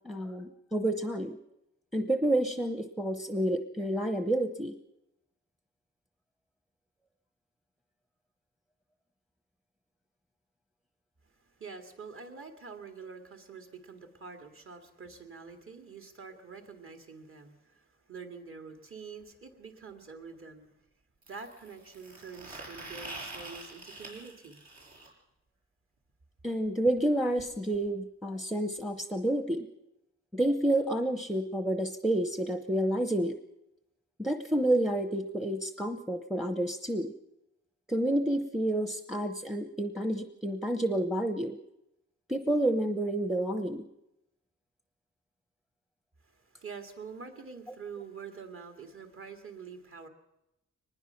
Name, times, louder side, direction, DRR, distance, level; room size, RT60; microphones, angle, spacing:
voice 1, 0.0-1.4 1.9-4.8 26.4-29.7 30.3-33.3 34.2-37.1 37.9-41.6 42.3-43.9, right 1 dB, ahead, 8 dB, 0.8 m, -29 dB
voice 2, 11.6-20.7 21.3-24.6 46.2-50.1, right 5 dB, 45° right, 4 dB, 2.4 m, -46 dB
sound 1, 19.2-19.3 21.2-25.1 27.0-27.1 27.4-27.5 27.7-27.9 28.8-28.9, right 2 dB, 70° right, 6.5 m, -45 dB
24.0 x 20.0 x 5.9 m, 0.89 s
wide cardioid pair, 150°, 29 cm